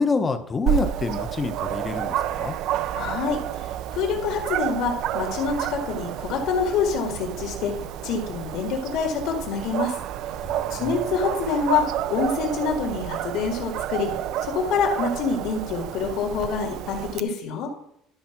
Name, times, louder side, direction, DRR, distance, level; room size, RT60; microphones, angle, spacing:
voice 1, 0.0-2.6 10.4-11.1, left 4 dB, 15° left, 8 dB, 0.8 m, -27 dB
Dog, 0.7-17.2, right 12 dB, 50° right, 0.4 m, -30 dB
voice 2, 2.9-7.7 8.0-10.0 10.7-14.1 14.4-17.7, left 5 dB, 55° left, 2 dB, 2.0 m, -26 dB
12.0 x 4.7 x 5.9 m, 0.72 s
cardioid pair, 180°, 0 cm